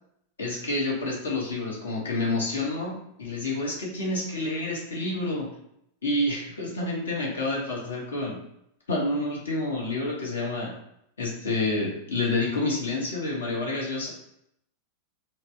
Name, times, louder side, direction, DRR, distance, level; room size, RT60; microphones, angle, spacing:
voice 1, 0.4-5.5 6.0-8.4 8.9-10.7 11.2-14.1, left 2 dB, 70° left, -2 dB, 1.1 m, -28 dB
4.0 x 2.2 x 3.2 m, 0.75 s
figure-of-eight pair, 90°, 0 cm